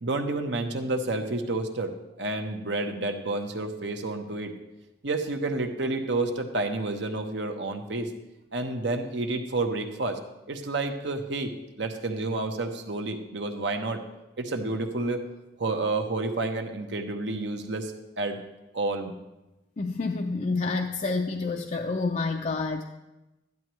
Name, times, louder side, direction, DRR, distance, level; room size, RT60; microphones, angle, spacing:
voice 1, 0.0-1.9 2.2-4.5 5.0-8.1 8.5-10.2 10.5-14.0 14.4-15.2 15.6-18.4 18.7-19.1, right 2 dB, 70° right, 5 dB, 1.0 m, -30 dB
voice 2, 19.8-22.8, left 3 dB, 40° left, 3 dB, 0.4 m, -28 dB
12.5 x 10.5 x 3.1 m, 0.99 s
head